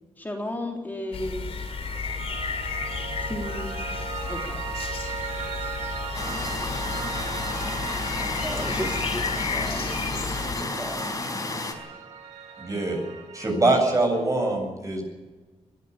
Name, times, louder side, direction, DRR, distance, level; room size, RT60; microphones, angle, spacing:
voice 1, 0.2-1.4 3.3-3.7 4.3-4.6, left 1 dB, 15° left, 1 dB, 3.4 m, -33 dB
sound 1, 1.1-10.6, left 5 dB, 65° left, 3.5 m, -33 dB
Piano, 1.3-13.7, right 6 dB, 80° right, 2.7 m, -37 dB
sound 2, 6.1-11.7, left 3 dB, 30° left, 4.6 m, -31 dB
voice 2, 8.1-11.2, right 1 dB, 10° right, 3 dB, 2.3 m, -37 dB
voice 3, 12.6-13.0 13.3-15.0, right 2 dB, 30° right, 3 dB, 7.9 m, -23 dB
22.5 x 14.5 x 8.8 m, 1.3 s
cardioid pair, 105°, 11 cm